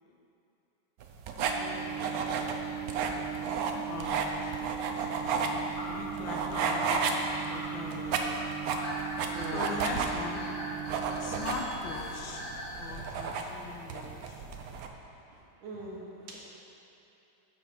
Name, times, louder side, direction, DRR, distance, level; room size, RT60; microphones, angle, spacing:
sound 1, 1.0-14.9, right 5 dB, 65° right, 0.9 m, -33 dB
Microwave oven, 1.4-14.8, right 9 dB, 50° right, 2.9 m, -40 dB
voice 1, 1.6-2.5 9.3-9.7 15.6-16.4, right 1 dB, 90° right, -4 dB, 2.3 m, -43 dB
voice 2, 3.9-4.5 4.9-5.1 5.3-8.3 9.5-10.5 11.2-12.4 12.8-14.4, left 4 dB, 75° left, 1 dB, 1.7 m, -41 dB
sound 2, 5.7-12.9, equal, 30° left, 1.5 m, -42 dB
9.2 x 6.9 x 4.9 m, 2.9 s
omnidirectional pair, 2.2 m